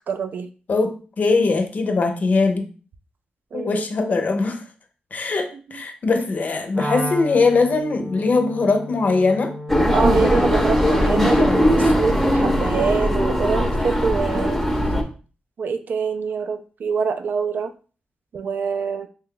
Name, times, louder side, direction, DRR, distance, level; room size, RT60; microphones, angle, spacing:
voice 1, 0.1-0.5 3.5-3.9 5.5-5.8 9.9-14.6 15.6-17.7 18.3-19.1, right 5 dB, 65° right, 9 dB, 0.3 m, -25 dB
voice 2, 0.7-2.7 3.5-4.6 5.1-9.5, left 3 dB, 55° left, 7 dB, 0.6 m, -21 dB
Wind instrument woodwind instrument, 6.7-13.1, left 1 dB, 40° right, 0.7 m, -33 dB
sound 1, 9.7-15.0, equal, 5° left, 0.6 m, -19 dB
3.0 x 2.2 x 3.7 m, 0.37 s
cardioid pair, 85°, 3 cm